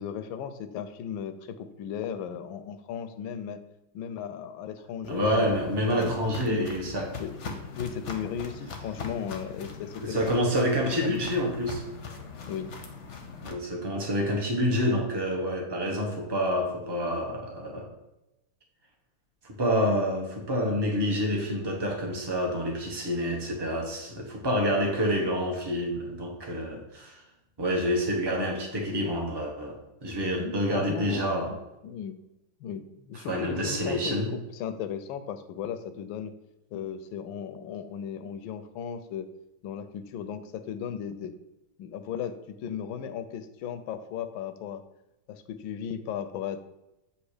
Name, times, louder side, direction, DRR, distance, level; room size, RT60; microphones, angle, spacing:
voice 1, 0.0-3.6 3.9-5.7 5.9-6.2 6.5-6.7 7.2-10.5 10.8-11.2 12.5-12.7 30.4-31.6 31.8-32.2 32.6-36.3 36.7-39.3 39.6-41.3 41.8-44.8 45.3-46.6, left 8 dB, 80° left, 10 dB, 1.3 m, -36 dB
Walk footsteps, 5.0-13.5, left 5 dB, 55° left, 0.8 m, -41 dB
voice 2, 5.1-7.2 10.0-11.8 13.4-17.9 19.4-27.2 27.6-31.5 33.3-34.3, equal, 20° right, 1 dB, 0.6 m, -28 dB
8.1 x 2.8 x 4.8 m, 0.93 s
omnidirectional pair, 2.2 m